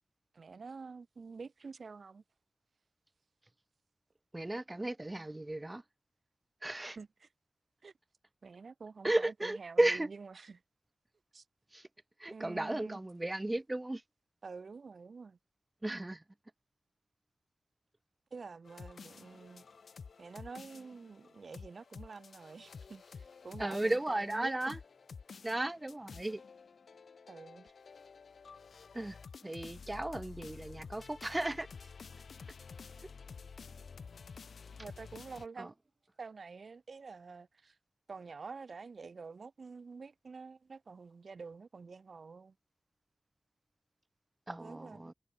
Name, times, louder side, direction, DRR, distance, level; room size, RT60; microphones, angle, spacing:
voice 1, 0.3-2.2 7.0-7.3 7.8-7.9 8.4-10.6 11.3-11.4 12.3-13.0 14.4-15.4 18.3-19.6 20.2-24.8 27.3-27.7 34.8-35.8 36.2-37.8 38.1-42.5 44.6-45.1, right 4 dB, 65° right, 0.7 m, -48 dB
voice 2, 4.3-5.8 6.6-7.0 9.0-10.1 11.7-11.9 12.2-14.0 15.8-16.2 23.6-24.8 25.4-26.4 28.9-29.2 29.4-31.7 33.0-33.1 35.6-35.7 44.5-45.1, right 1 dB, 20° right, 0.6 m, -34 dB
sound 1, 18.6-35.5, left 5 dB, 80° left, 3.5 m, -51 dB
wide cardioid pair, 95°, 0 cm